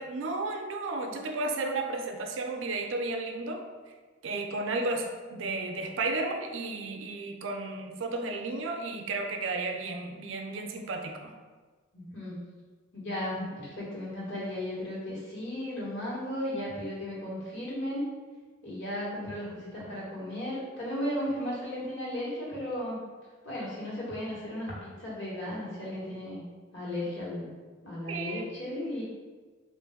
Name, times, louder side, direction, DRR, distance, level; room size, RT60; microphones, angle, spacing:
voice 1, 0.0-3.6 4.2-11.3 28.1-28.5, right 3 dB, 75° right, 3 dB, 0.4 m, -33 dB
voice 2, 11.9-12.4 12.9-18.0 18.6-23.0 23.4-26.4 26.7-27.5 27.8-29.0, left 1 dB, 65° left, -7 dB, 1.3 m, -35 dB
3.3 x 2.5 x 3.5 m, 1.4 s
head